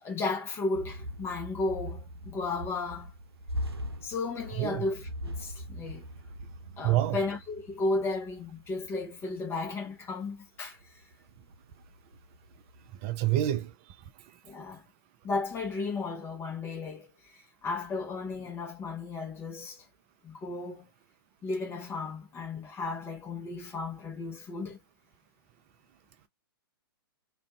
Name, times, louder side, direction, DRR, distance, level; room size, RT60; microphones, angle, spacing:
voice 1, 0.0-3.1 4.0-6.1 6.8-10.8 14.4-14.8 15.2-17.1 17.3-19.8 20.2-20.8 21.4-24.8, left 3 dB, 20° left, 0.9 m, -34 dB
sound 1, 0.7-10.5 10.9-13.6, equal, 85° right, 0.5 m, -41 dB
voice 2, 6.8-7.2 13.0-13.7, right 13 dB, 35° right, 0.4 m, -27 dB
2.4 x 2.3 x 2.4 m
figure-of-eight pair, 110°, 13 cm